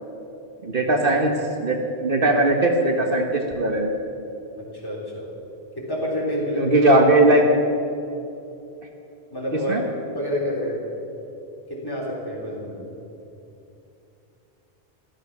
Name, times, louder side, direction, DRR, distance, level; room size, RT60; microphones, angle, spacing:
voice 1, 0.6-1.3 1.6-3.9 6.5-7.5 9.7-9.8, right 2 dB, 55° right, 2 dB, 1.3 m, -19 dB
voice 2, 4.6-5.3 5.7-6.8 9.3-9.8 10.1-10.8 11.7-12.8, equal, 20° left, -4 dB, 3.4 m, -28 dB
15.0 x 12.5 x 5.9 m, 2.8 s
omnidirectional pair, 1.1 m